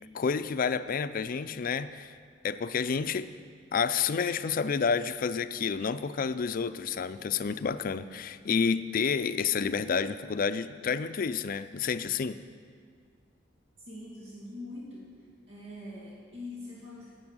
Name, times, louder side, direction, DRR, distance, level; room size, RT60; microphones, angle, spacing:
voice 1, 0.1-2.1 2.4-3.3 3.7-12.4, left 6 dB, 45° left, 12 dB, 0.4 m, -29 dB
voice 2, 13.8-15.1 15.5-17.1, left 2 dB, 90° right, -6 dB, 2.4 m, -43 dB
9.7 x 6.9 x 8.8 m, 2.1 s
head